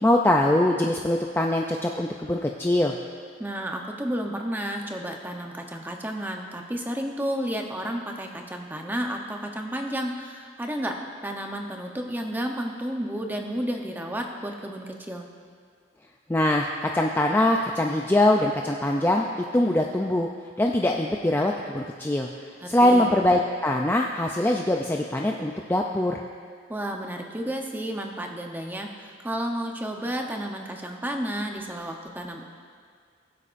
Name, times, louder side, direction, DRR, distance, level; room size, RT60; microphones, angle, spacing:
voice 1, 0.0-2.9 16.3-19.3 19.5-20.3 20.6-22.3 22.7-26.2, left 1 dB, 10° left, 1 dB, 0.4 m, -22 dB
voice 2, 3.4-10.9 11.2-15.3 22.6-23.2 26.7-32.4, equal, 10° right, 2 dB, 0.8 m, -32 dB
20.5 x 8.3 x 2.6 m, 2.1 s
head